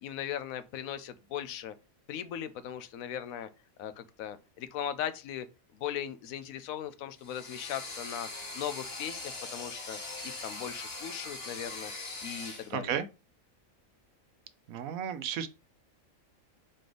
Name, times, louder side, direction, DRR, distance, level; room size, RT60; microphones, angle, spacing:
voice 1, 0.0-1.7 2.1-3.5 3.8-5.5 5.7-8.3 8.5-13.0, left 10 dB, 80° left, 1.0 m, -38 dB
sound 1, 7.2-12.7, left 2 dB, 45° left, 1.4 m, -41 dB
voice 2, 12.7-13.1 14.7-15.5, right 8 dB, 80° right, 1.0 m, -33 dB
4.2 x 3.3 x 3.7 m
omnidirectional pair, 1.4 m